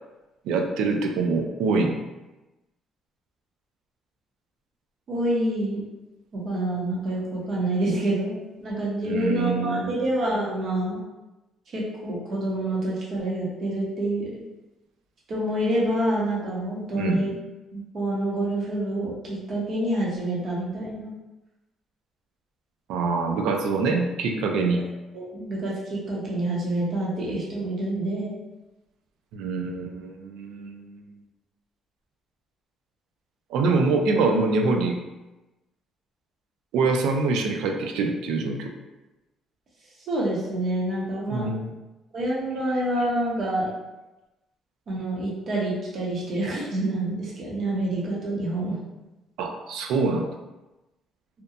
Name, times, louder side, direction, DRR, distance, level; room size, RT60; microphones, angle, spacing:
voice 1, 0.5-2.0 9.0-10.0 16.9-17.2 22.9-24.8 29.3-31.0 33.5-35.0 36.7-38.7 41.3-41.7 49.4-50.3, right 3 dB, 90° right, 3 dB, 0.3 m, -25 dB
voice 2, 5.1-5.9 6.3-11.0 11.7-14.3 15.3-17.4 17.7-21.1 25.1-28.3 40.1-41.5 42.1-43.7 44.9-48.8, right 1 dB, 50° right, -5 dB, 0.8 m, -27 dB
2.7 x 2.2 x 2.4 m, 1.1 s
cardioid pair, 125°, 0 cm